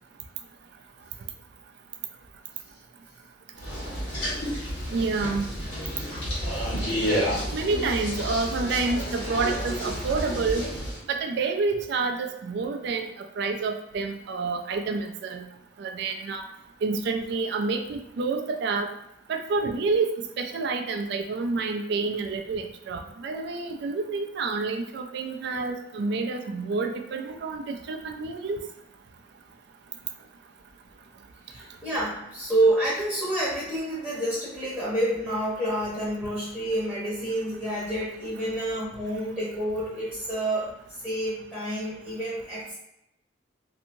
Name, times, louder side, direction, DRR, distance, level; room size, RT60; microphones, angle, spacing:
sound 1, 3.6-11.0, equal, 70° left, 1.2 m, -30 dB
voice 1, 4.9-5.5 7.5-10.7 11.1-15.4 15.8-16.4 16.8-18.9 19.3-28.6, right 4 dB, 60° right, 5 dB, 0.3 m, -28 dB
voice 2, 31.5-40.7 41.0-42.7, right 1 dB, ahead, -9 dB, 0.8 m, -28 dB
2.7 x 2.7 x 2.5 m, 0.86 s
head